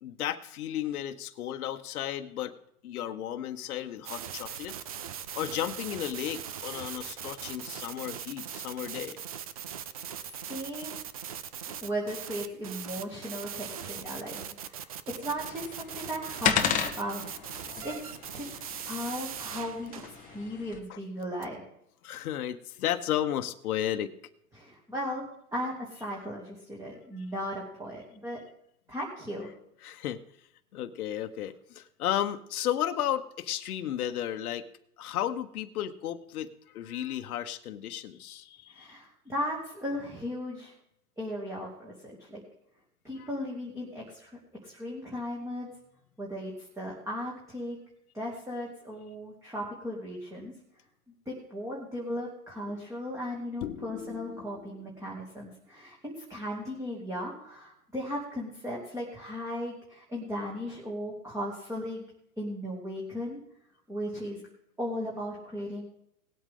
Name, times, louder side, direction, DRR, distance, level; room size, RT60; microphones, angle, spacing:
voice 1, 0.0-2.5 2.8-4.7 5.3-9.2 11.7-11.8 20.9-21.0 22.0-24.1 29.8-30.2 30.7-34.7 35.0-36.5 36.7-38.9 43.2-43.3 53.6-54.6, left 11 dB, 65° left, 7 dB, 1.2 m, -34 dB
sound 1, 4.0-20.4 21.2-21.4, right 8 dB, 25° right, 0.3 m, -40 dB
voice 2, 10.2-11.0 11.8-17.4 17.8-18.5 18.9-21.6 24.5-25.2 25.5-28.4 28.9-29.5 38.7-40.8 41.2-42.4 43.0-45.7 46.2-47.8 48.1-50.5 51.3-62.0 62.4-63.4 63.9-64.5 64.8-65.8, equal, 5° right, -4 dB, 2.7 m, -36 dB
sound 2, 15.3-20.8, left 8 dB, 15° left, 1.1 m, -34 dB
19.0 x 8.3 x 3.8 m, 0.74 s
hypercardioid pair, 140°, 47 cm